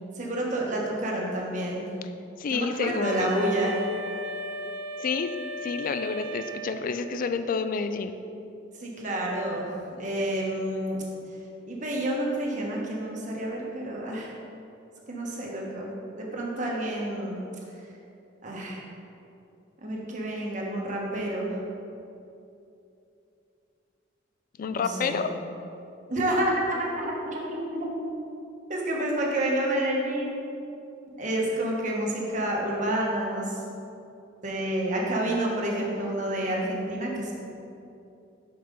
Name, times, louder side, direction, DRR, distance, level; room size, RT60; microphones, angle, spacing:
voice 1, 0.2-1.9 2.5-3.8 8.8-11.0 11.7-14.3 15.1-15.9 16.2-17.4 18.4-18.8 19.8-21.6 24.7-25.2 26.1-27.9 28.7-30.4 31.2-33.6 34.4-37.3, right 1 dB, 40° right, -2 dB, 1.2 m, -29 dB
voice 2, 2.4-3.4 5.0-5.3 5.6-8.2 24.6-25.3, left 5 dB, 45° left, 9 dB, 0.3 m, -29 dB
Wind instrument woodwind instrument, 3.0-7.2, equal, 90° right, 0.5 m, -37 dB
5.5 x 5.2 x 5.2 m, 2.8 s
head